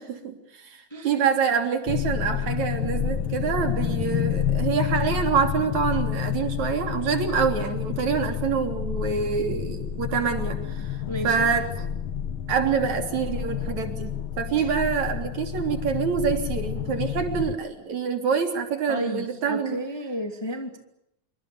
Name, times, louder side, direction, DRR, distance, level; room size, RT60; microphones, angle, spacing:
voice 1, 0.0-11.0 11.2-11.9 12.5-19.8, right 6 dB, 70° right, 5 dB, 4.5 m, -26 dB
sound 1, 1.9-17.5, left 9 dB, 55° left, 1.7 m, -29 dB
voice 2, 11.1-11.5 14.6-14.7 18.9-20.8, equal, 10° left, 4 dB, 2.4 m, -33 dB
26.5 x 25.0 x 7.0 m, 0.80 s
omnidirectional pair, 3.4 m